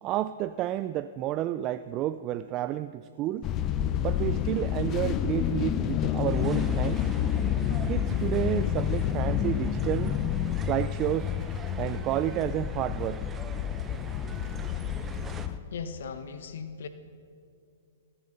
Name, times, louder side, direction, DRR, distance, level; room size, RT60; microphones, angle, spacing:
voice 1, 0.0-3.5 4.0-7.0 7.9-10.1 10.6-11.3 11.8-13.2, right 13 dB, 35° right, 12 dB, 0.3 m, -30 dB
sound 1, 3.4-15.6, left 9 dB, 30° left, 0.6 m, -29 dB
sound 2, 6.3-15.5, right 6 dB, 20° right, 0.8 m, -46 dB
voice 2, 15.7-16.9, left 6 dB, 70° left, 11 dB, 1.0 m, -38 dB
18.5 x 10.0 x 6.6 m, 2.4 s
hypercardioid pair, 125°, 0 cm